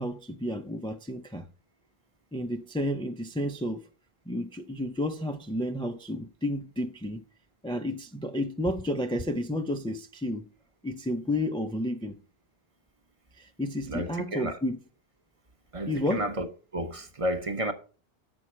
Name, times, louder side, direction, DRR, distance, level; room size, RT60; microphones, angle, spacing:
voice 1, 0.0-1.5 2.3-3.8 4.3-7.2 7.6-10.5 10.8-12.2 13.4-14.8 15.9-16.3, left 1 dB, 10° left, 0.3 m, -31 dB
voice 2, 13.9-14.6 15.7-16.5 16.7-17.7, right 1 dB, 35° right, 1.0 m, -31 dB
8.4 x 6.2 x 4.4 m
omnidirectional pair, 1.1 m